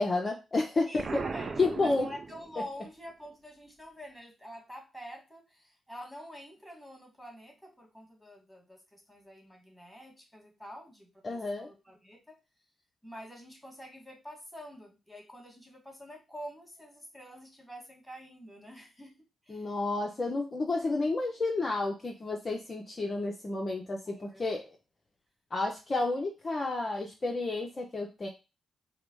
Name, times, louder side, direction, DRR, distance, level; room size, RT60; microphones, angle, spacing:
voice 1, 0.0-1.0 1.6-2.1 11.2-11.7 19.5-24.6 25.5-28.3, left 3 dB, 40° left, 2 dB, 0.8 m, -31 dB
voice 2, 0.8-1.5 1.8-12.3 13.0-19.7 24.0-24.4, equal, 5° left, 0 dB, 2.0 m, -47 dB
Explosion, 1.0-2.8, right 4 dB, 45° right, 0.5 m, -37 dB
4.8 x 2.1 x 4.6 m, 0.27 s
cardioid pair, 65°, 0 cm